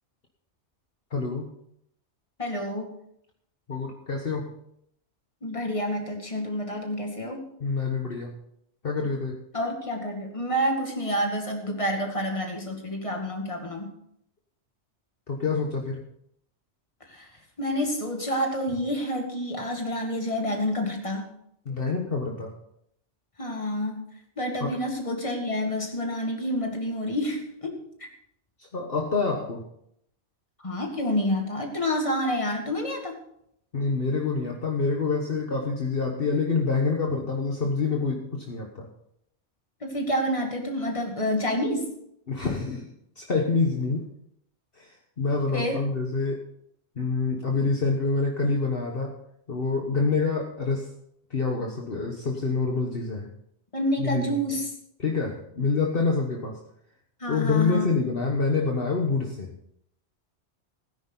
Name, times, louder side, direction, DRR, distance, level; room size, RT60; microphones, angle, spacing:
voice 1, 1.1-1.5 3.7-4.6 7.6-8.3 8.8-9.4 15.3-16.0 21.6-22.5 24.6-24.7 28.6-29.6 33.7-38.9 42.3-44.1 44.8-46.4 47.0-49.1 49.5-50.9 51.3-53.3 54.0-54.2 55.0-56.6 57.3-59.5, left 4 dB, 55° left, 1 dB, 1.5 m, -27 dB
voice 2, 2.4-2.9 5.4-7.5 9.5-13.9 17.1-17.3 17.6-21.3 23.4-24.0 24.4-28.1 30.6-33.1 39.8-41.9 45.5-45.8 53.7-54.7 57.2-57.9, equal, 30° left, 2 dB, 2.3 m, -28 dB
17.5 x 10.0 x 4.0 m, 0.73 s
omnidirectional pair, 1.2 m